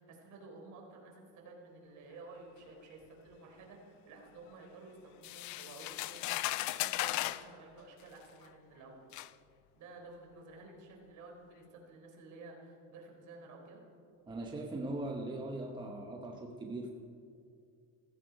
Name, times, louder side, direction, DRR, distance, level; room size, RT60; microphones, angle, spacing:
voice 1, 0.0-9.0 9.8-13.8, right 3 dB, 50° right, 1 dB, 3.8 m, -52 dB
sound 1, 5.2-7.5 8.4-8.5 9.1-9.3, left 17 dB, 50° left, 0.5 m, -36 dB
voice 2, 14.3-16.9, right 2 dB, 10° right, 2 dB, 0.9 m, -40 dB
15.5 x 14.5 x 5.1 m, 2.3 s
cardioid pair, 150°, 38 cm